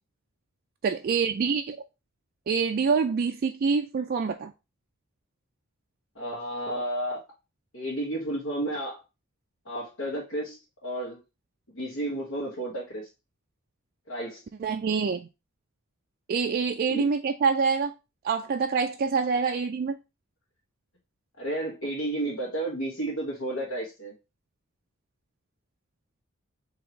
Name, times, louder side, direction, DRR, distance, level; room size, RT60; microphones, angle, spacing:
voice 1, 0.8-1.8 2.5-4.5 14.6-15.3 16.3-17.9 18.2-20.0, right 5 dB, 45° right, 0.3 m, -26 dB
voice 2, 6.1-7.2 7.7-9.0 9.6-11.2 11.7-13.1 14.1-14.4 16.9-17.1 21.4-24.1, right 1 dB, 75° left, 1.4 m, -32 dB
4.0 x 2.9 x 4.5 m
head